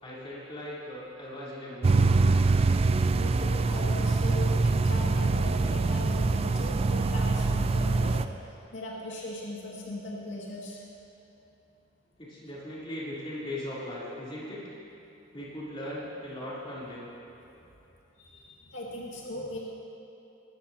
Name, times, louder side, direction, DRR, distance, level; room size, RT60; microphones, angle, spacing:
voice 1, 0.0-2.1 12.2-14.7 15.3-17.1, left 1 dB, 30° left, -8 dB, 3.6 m, -38 dB
sound 1, 1.8-8.3, right 3 dB, 30° right, 0.3 m, -24 dB
voice 2, 3.1-8.2 8.7-10.8 18.2-19.6, left 1 dB, 80° left, -5 dB, 2.1 m, -38 dB
21.0 x 14.0 x 2.9 m, 3.0 s
head